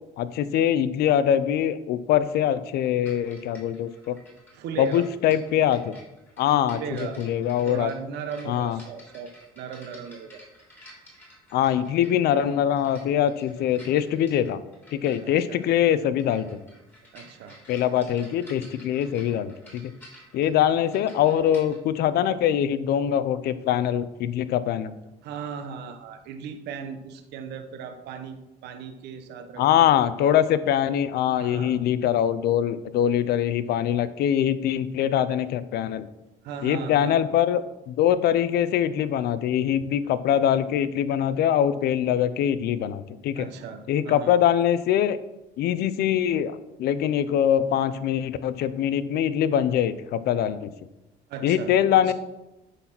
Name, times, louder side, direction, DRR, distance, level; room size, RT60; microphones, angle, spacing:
voice 1, 0.0-4.2 4.8-5.9 6.4-7.9 8.5-8.8 11.5-14.6 14.9-16.6 17.7-19.9 20.3-24.9 29.6-36.0 36.6-43.5 43.9-45.2 45.6-50.7 51.4-52.1, left 10 dB, 70° left, 14 dB, 0.6 m, -23 dB
sound 1, 3.1-21.8, equal, 10° left, 3.0 m, -52 dB
voice 2, 4.5-5.1 6.7-7.2 7.6-10.4 15.2-15.6 17.1-17.6 25.2-30.0 31.4-31.8 36.4-37.2 43.4-44.3 51.3-52.1, right 6 dB, 80° right, 7 dB, 0.9 m, -37 dB
9.8 x 4.1 x 5.9 m, 0.98 s
cardioid pair, 110°, 17 cm